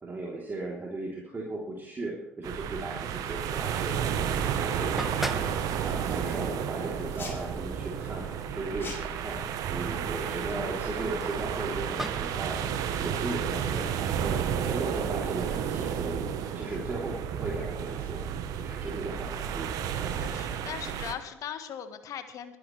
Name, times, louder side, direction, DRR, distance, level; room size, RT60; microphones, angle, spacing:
voice 1, 0.0-5.5 5.8-9.4 9.7-12.6 13.0-16.2 16.6-18.2 18.5-19.7, right 2 dB, 30° right, -4 dB, 3.3 m, -36 dB
sound 1, 2.4-21.1, right 8 dB, 60° right, 1.1 m, -32 dB
sound 2, 4.0-14.8, equal, 5° right, 0.8 m, -44 dB
sound 3, 7.1-7.5 8.8-9.2 10.3-11.0, left 3 dB, 35° left, 4.3 m, -43 dB
voice 2, 20.2-22.6, left 9 dB, 55° left, 9 dB, 1.5 m, -39 dB
22.5 x 10.5 x 3.3 m, 0.89 s
hypercardioid pair, 55°, 7 cm